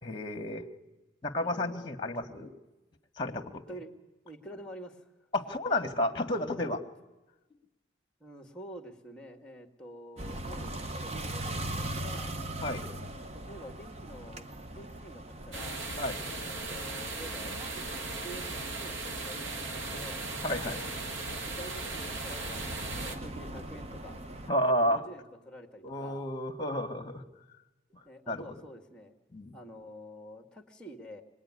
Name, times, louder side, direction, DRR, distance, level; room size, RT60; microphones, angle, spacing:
voice 1, 0.0-0.7 1.2-2.5 3.2-3.5 5.3-6.8 12.6-12.9 16.0-16.3 20.4-20.9 24.5-25.0 25.8-27.2 27.9-28.4 29.3-29.6, left 1 dB, 25° left, 6 dB, 1.8 m, -31 dB
voice 2, 1.4-1.9 3.7-3.9 4.2-5.0 6.6-6.7 8.2-10.7 11.1-12.4 13.2-15.9 16.3-20.2 21.3-24.2 24.8-26.3 28.0-29.1 29.5-31.2, equal, 5° left, 5 dB, 2.1 m, -48 dB
sound 1, 10.2-24.5, right 1 dB, 35° right, 0.9 m, -41 dB
sound 2, 15.5-23.2, right 2 dB, 80° right, 2.1 m, -38 dB
26.5 x 20.5 x 9.8 m, 1.1 s
head